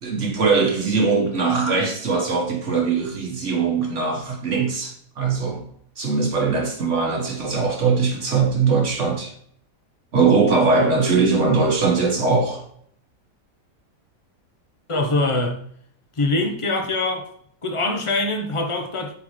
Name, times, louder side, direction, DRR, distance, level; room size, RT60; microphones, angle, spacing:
voice 1, 0.0-5.6 6.0-9.3 10.1-12.6, right 4 dB, 45° right, 1.6 m, -21 dB
voice 2, 14.9-15.6 16.2-17.3 17.6-19.1, left 2 dB, 30° left, 0.6 m, -23 dB
8.0 x 3.8 x 3.1 m
omnidirectional pair, 1.8 m